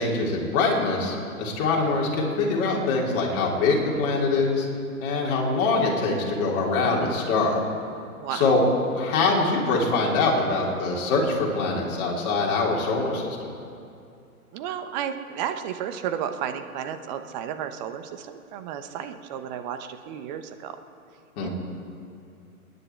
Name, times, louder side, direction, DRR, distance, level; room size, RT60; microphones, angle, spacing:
voice 1, 0.0-4.7 5.0-7.6 8.3-8.6 8.9-13.5 21.4-21.5, left 3 dB, 30° left, -3 dB, 3.2 m, -24 dB
voice 2, 8.2-8.6 14.5-20.8 21.4-21.5, right 9 dB, 30° right, 8 dB, 0.9 m, -33 dB
28.5 x 10.0 x 4.5 m, 2.5 s
hypercardioid pair, 130°, 44 cm